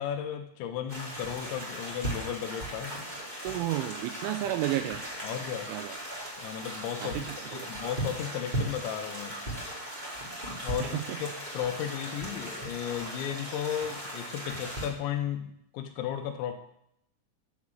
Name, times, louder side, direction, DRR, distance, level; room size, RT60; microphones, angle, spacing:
voice 1, 0.0-3.0 5.2-5.7 6.4-9.4 10.6-16.5, left 9 dB, 80° left, 6 dB, 2.7 m, -35 dB
sound 1, 0.9-14.9, right 1 dB, 40° right, 0.6 m, -37 dB
voice 2, 3.4-5.0 5.7-6.0 7.0-7.2 7.5-7.7 10.8-11.2, right 14 dB, 90° right, 7 dB, 2.7 m, -32 dB
10.5 x 4.9 x 7.3 m, 0.76 s
omnidirectional pair, 6.0 m